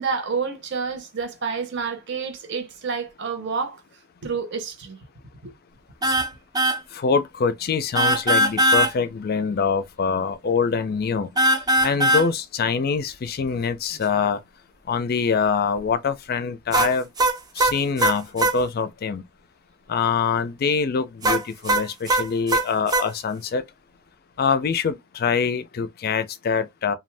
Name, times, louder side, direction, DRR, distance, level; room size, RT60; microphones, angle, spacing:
voice 1, 0.0-3.8 4.2-5.0 5.4-5.5, right 5 dB, 60° right, 0.8 m, -29 dB
sound 1, 6.0-6.3 6.6-6.8 8.0-8.9 11.4-12.3 16.7-18.6 21.2-23.1, right 1 dB, 20° right, 0.5 m, -20 dB
voice 2, 6.9-11.3 11.8-14.4 14.9-17.1 17.6-19.2 19.9-23.6 24.4-27.0, left 5 dB, 50° left, 0.4 m, -24 dB
2.6 x 2.2 x 3.3 m
head